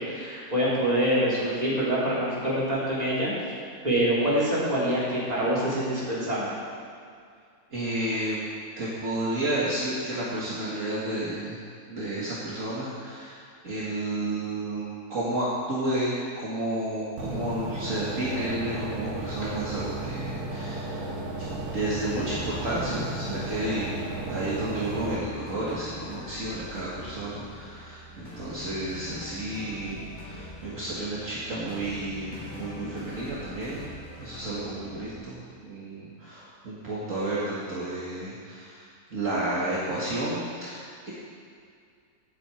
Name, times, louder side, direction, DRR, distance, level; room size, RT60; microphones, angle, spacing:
voice 1, 0.0-3.3 3.8-6.6, right 1 dB, 25° right, -9 dB, 3.8 m, -25 dB
voice 2, 7.7-8.4 8.8-11.6 11.9-21.1 21.4-21.5 21.7-33.9 34.2-40.8, right 1 dB, 55° right, -8 dB, 2.3 m, -31 dB
sound 1, 17.2-25.2, right 2 dB, 85° right, 1.7 m, -34 dB
sound 2, 21.4-35.1, left 1 dB, 30° left, 3.5 m, -43 dB
17.0 x 8.1 x 4.5 m, 2.2 s
omnidirectional pair, 1.6 m